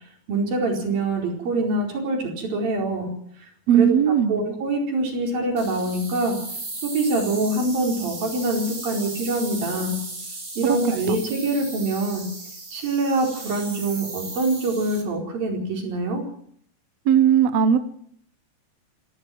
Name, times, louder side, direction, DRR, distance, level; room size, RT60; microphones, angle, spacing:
voice 1, 0.3-3.1 3.7-6.4 6.8-10.0 10.6-12.3 12.7-16.2, right 2 dB, 85° right, 1 dB, 6.4 m, -25 dB
voice 2, 3.7-4.4 10.7-10.8 17.1-17.8, right 9 dB, 65° right, 11 dB, 1.9 m, -17 dB
sound 1, 5.6-15.0, right 3 dB, 20° right, 3.2 m, -36 dB
27.0 x 13.0 x 7.8 m, 0.65 s
omnidirectional pair, 4.0 m